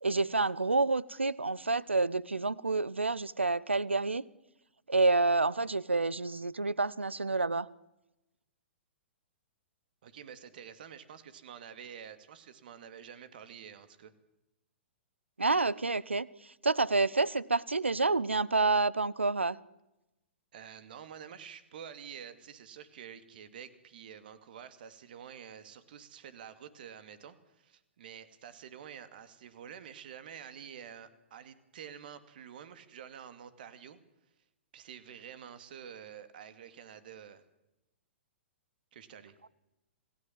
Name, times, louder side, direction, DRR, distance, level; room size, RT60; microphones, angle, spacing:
voice 1, 0.0-4.2 4.9-7.7 15.4-19.6, right 3 dB, 80° right, 0.8 m, -28 dB
voice 2, 10.0-14.1 20.5-34.0 34.7-37.4 38.9-39.3, right 8 dB, 50° right, 2.4 m, -48 dB
27.0 x 17.5 x 7.6 m
figure-of-eight pair, 115°, 6 cm